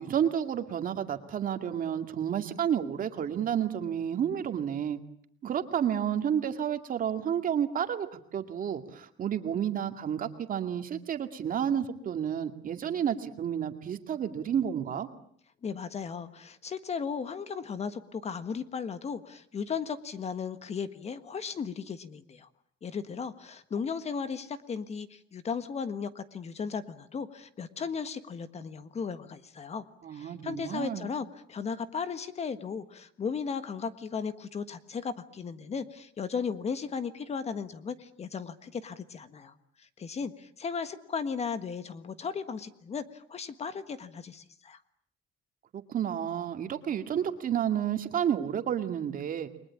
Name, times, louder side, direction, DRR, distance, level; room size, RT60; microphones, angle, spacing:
voice 1, 0.0-5.0 5.4-15.1 30.0-31.1 45.7-49.5, right 9 dB, 45° right, 7 dB, 2.3 m, -31 dB
voice 2, 15.6-22.5 22.8-29.8 30.1-44.8, left 6 dB, 30° left, 12 dB, 1.5 m, -36 dB
30.0 x 22.5 x 8.5 m, 0.64 s
cardioid pair, 155°, 20 cm